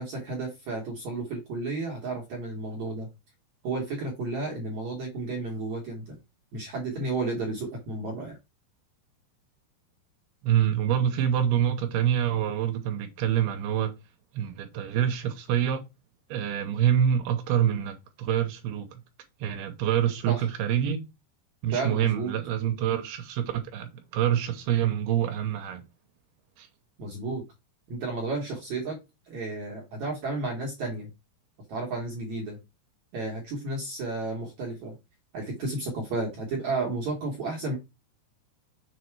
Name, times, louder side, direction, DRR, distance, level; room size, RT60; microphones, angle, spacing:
voice 1, 0.0-3.1 3.6-6.2 6.5-8.4 20.3-20.5 21.7-22.3 27.0-27.4 27.9-29.0 29.3-31.1 31.7-32.6 33.1-34.9 35.3-37.8, right 3 dB, 65° right, 1.9 m, -32 dB
voice 2, 10.4-13.9 14.3-15.9 16.3-19.0 19.4-21.0 21.6-25.8 26.6-26.7, right 10 dB, 80° right, 2.6 m, -26 dB
6.8 x 4.2 x 4.5 m
omnidirectional pair, 4.8 m